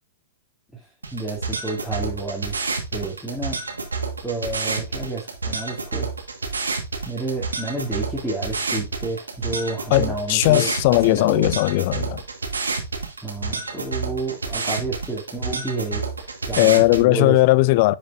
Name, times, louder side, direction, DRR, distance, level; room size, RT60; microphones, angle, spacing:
voice 1, 0.7-3.6 4.2-6.1 7.0-11.5 13.2-17.4 17.9-18.0, right 2 dB, 5° left, 2.4 m, -30 dB
sound 1, 1.0-17.0, right 4 dB, 80° right, 1.5 m, -29 dB
voice 2, 9.9-12.2 16.6-17.9, left 19 dB, 45° left, 0.4 m, -18 dB
10.5 x 5.3 x 2.5 m
figure-of-eight pair, 105°, 0 cm